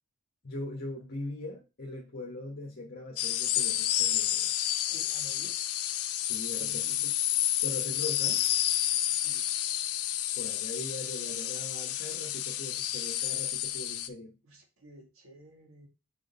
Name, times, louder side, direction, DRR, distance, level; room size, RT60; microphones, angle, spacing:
voice 1, 0.4-4.5 6.2-7.1 7.6-8.4 10.4-14.3, left 2 dB, 45° left, 0 dB, 1.2 m, -41 dB
sound 1, 3.2-14.1, left 12 dB, 90° left, 0.7 m, -30 dB
voice 2, 4.9-5.6 6.5-7.1 9.1-9.4 14.4-15.9, right 1 dB, 65° right, 1 dB, 2.4 m, -52 dB
5.2 x 4.8 x 5.3 m, 0.29 s
head